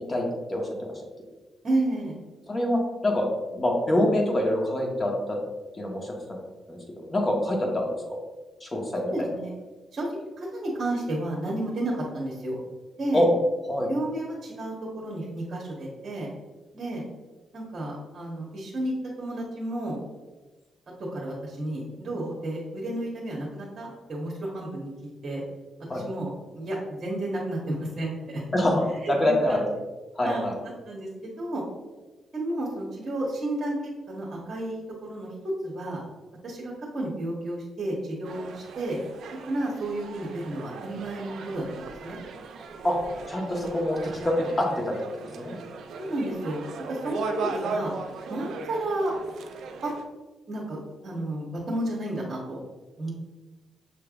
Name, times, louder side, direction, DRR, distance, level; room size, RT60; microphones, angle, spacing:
voice 1, 0.1-0.9 2.5-3.2 3.5-5.4 5.8-6.4 6.7-6.8 7.1-8.2 8.6-9.3 13.1-13.3 13.7-13.9 25.9-26.0 28.5-29.6 30.2-30.5 42.8-43.0 43.3-44.0 44.2-44.9 45.4-45.6, left 1 dB, 30° left, -1 dB, 1.3 m, -25 dB
voice 2, 1.6-2.2 9.1-9.5 9.9-10.1 10.4-12.6 13.0-13.2 13.8-16.3 16.7-17.0 17.5-20.0 21.1-25.4 25.9-28.4 29.0-29.7 30.2-30.5 30.8-31.1 31.4-31.6 32.3-33.8 34.1-36.0 36.4-39.0 39.5-42.2 45.9-47.9 48.3-49.1 49.8-49.9 50.5-50.8 51.0-52.6 53.0-53.1, right 1 dB, 45° right, -3 dB, 1.1 m, -32 dB
sound 1, 38.2-50.0, right 4 dB, 80° right, 0.4 m, -38 dB
6.5 x 3.3 x 2.4 m, 1.2 s
cardioid pair, 75°, 0 cm